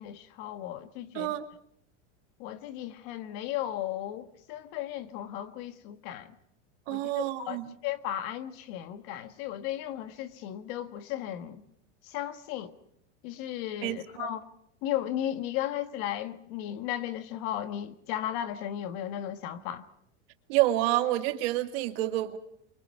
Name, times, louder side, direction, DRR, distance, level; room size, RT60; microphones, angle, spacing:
voice 1, 0.0-1.3 2.4-6.3 6.9-11.6 12.0-12.7 13.2-14.4 14.8-19.9, left 11 dB, 50° left, 1.7 m, -35 dB
voice 2, 1.1-1.5 6.9-7.7 13.8-14.3 20.5-22.4, right 15 dB, 55° right, 2.2 m, -28 dB
29.0 x 24.5 x 4.7 m
supercardioid pair, 160°, 36 cm